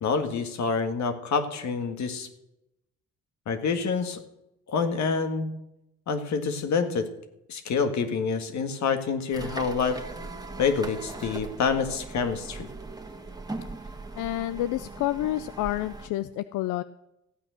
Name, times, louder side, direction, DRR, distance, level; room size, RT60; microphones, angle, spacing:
voice 1, 0.0-2.3 3.5-4.2 4.7-5.5 6.1-7.1 7.5-10.0 10.6-12.7, left 5 dB, 65° left, 7 dB, 1.8 m, -27 dB
sound 1, 9.3-16.1, right 2 dB, 15° right, 1.7 m, -39 dB
voice 2, 14.2-16.8, left 14 dB, 90° left, 14 dB, 0.5 m, -29 dB
15.0 x 9.1 x 6.4 m, 0.88 s
cardioid pair, 90°, 30 cm